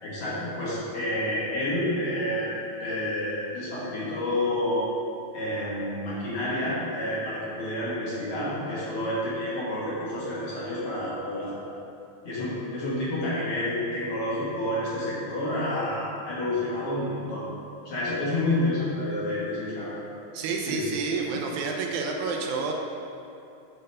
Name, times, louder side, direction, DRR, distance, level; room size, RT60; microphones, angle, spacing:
voice 1, 0.0-2.5 2.8-4.9 5.3-11.6 12.2-17.4 17.9-20.0 20.7-21.0, left 1 dB, 55° left, -8 dB, 2.1 m, -29 dB
voice 2, 20.3-22.7, right 4 dB, 80° right, 1 dB, 2.0 m, -29 dB
6.8 x 3.8 x 5.3 m, 2.7 s
omnidirectional pair, 3.4 m